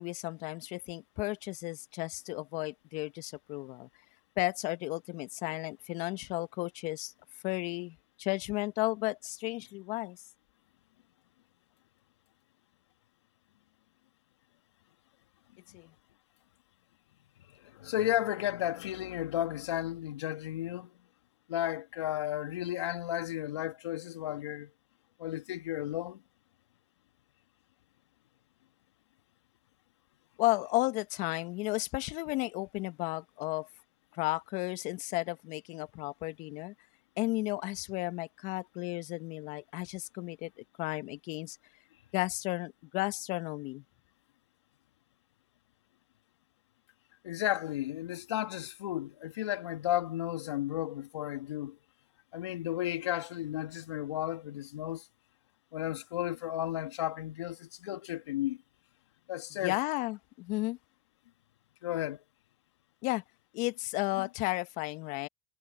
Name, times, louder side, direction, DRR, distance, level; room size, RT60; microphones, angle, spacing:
voice 1, 0.0-3.9 4.4-7.1 7.4-10.2 15.7-15.9 30.4-33.7 34.1-36.7 37.2-40.5 40.8-41.6 42.1-43.8 59.5-60.8 63.0-63.2 63.5-65.3, left 22 dB, 60° left, 1.3 m, -33 dB
voice 2, 17.6-20.9 21.5-24.7 25.2-26.2 47.2-51.8 52.3-55.0 55.7-58.6 59.3-59.8 61.8-62.2 64.2-64.3, left 13 dB, 85° left, 1.9 m, -33 dB
hypercardioid pair, 85°, 14 cm